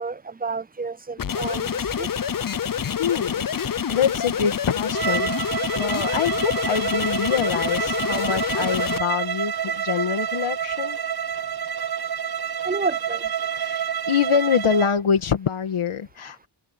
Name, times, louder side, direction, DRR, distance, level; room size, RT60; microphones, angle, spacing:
voice 1, 0.0-1.7 2.0-2.1 12.6-13.2, right 4 dB, 20° right, 0.4 m, -29 dB
sound 1, 1.2-9.0, left 8 dB, 45° left, 0.8 m, -27 dB
voice 2, 3.0-11.0 13.6-16.5, left 7 dB, 80° left, 2.0 m, -25 dB
Bowed string instrument, 4.9-14.9, right 8 dB, 50° right, 2.3 m, -28 dB
open air
wide cardioid pair, 95°, 49 cm